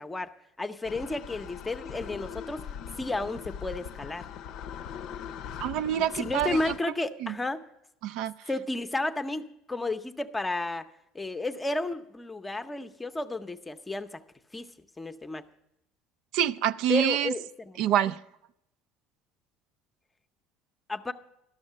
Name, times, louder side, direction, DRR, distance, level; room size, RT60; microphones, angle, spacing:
voice 1, 0.0-2.7 3.0-4.3 6.0-7.6 8.5-10.9 11.1-14.2 14.5-14.7 15.0-15.4 16.9-17.8 20.9-21.1, left 2 dB, 10° left, 0.7 m, -32 dB
sound 1, 0.8-6.8, left 8 dB, 60° left, 0.6 m, -41 dB
voice 2, 5.6-6.7 7.2-7.3 8.0-8.3 16.3-17.3 17.8-18.2, right 11 dB, 70° right, 0.3 m, -26 dB
12.5 x 6.5 x 8.9 m
cardioid pair, 120°, 0 cm